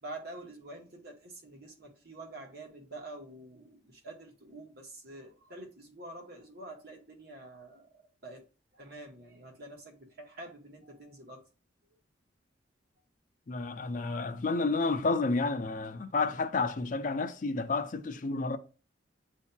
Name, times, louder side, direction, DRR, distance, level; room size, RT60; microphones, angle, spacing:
voice 1, 0.0-8.4 8.7-11.4, right 2 dB, 55° right, 1.1 m, -47 dB
voice 2, 13.5-18.6, left 3 dB, 45° left, 0.5 m, -30 dB
8.0 x 2.7 x 2.2 m
head